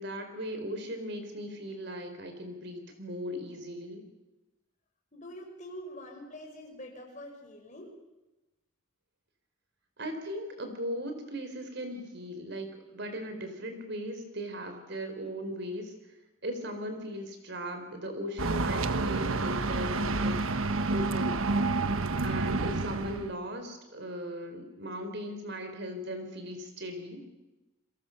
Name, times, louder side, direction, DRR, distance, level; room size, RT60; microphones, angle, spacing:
voice 1, 0.0-4.1 10.0-15.9 16.4-20.4 20.9-21.4 21.8-21.9 22.2-27.2, equal, 55° right, 6 dB, 4.7 m, -38 dB
voice 2, 5.1-8.0, equal, 35° left, 2 dB, 5.7 m, -45 dB
sound 1, 18.4-23.3, right 3 dB, 80° right, 1.2 m, -29 dB
29.5 x 22.5 x 6.8 m, 1.0 s
head